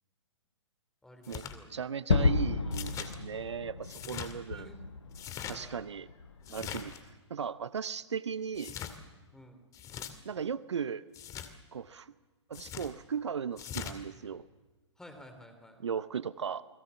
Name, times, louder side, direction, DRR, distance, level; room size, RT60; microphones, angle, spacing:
voice 1, 1.0-1.9 4.4-4.8 5.5-5.9 9.3-9.7 15.0-15.8, left 1 dB, 5° left, 6 dB, 3.3 m, -53 dB
sound 1, 1.2-1.5 2.7-3.1 3.8-4.3 5.1-5.6 6.4-7.0 8.5-9.0 9.7-10.1 11.1-11.5 12.5-12.9 13.6-14.0, left 9 dB, 20° left, 2.2 m, -41 dB
voice 2, 1.7-4.7 5.5-6.1 6.5-6.9 7.3-8.7 10.2-11.0 11.7-12.1 12.5-14.4 15.8-16.6, right 7 dB, 70° right, 16 dB, 0.8 m, -36 dB
Gunshot gunfire / Fireworks / Boom, 2.1-6.9, left 4 dB, 75° left, 1.6 m, -32 dB
29.0 x 21.5 x 7.1 m, 1.2 s
figure-of-eight pair, 120°, 15 cm